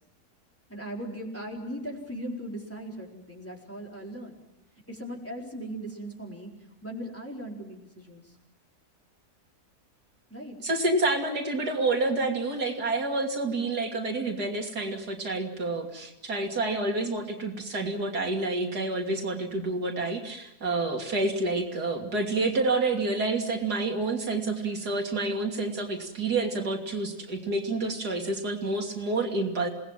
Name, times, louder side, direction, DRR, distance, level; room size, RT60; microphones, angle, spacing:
voice 1, 0.7-4.4 4.9-6.5 6.8-8.3 10.3-10.6, right 1 dB, 10° left, -2 dB, 4.4 m, -38 dB
voice 2, 10.6-29.7, right 2 dB, 85° right, 2 dB, 3.3 m, -28 dB
28.0 x 19.0 x 7.5 m, 0.93 s
omnidirectional pair, 1.7 m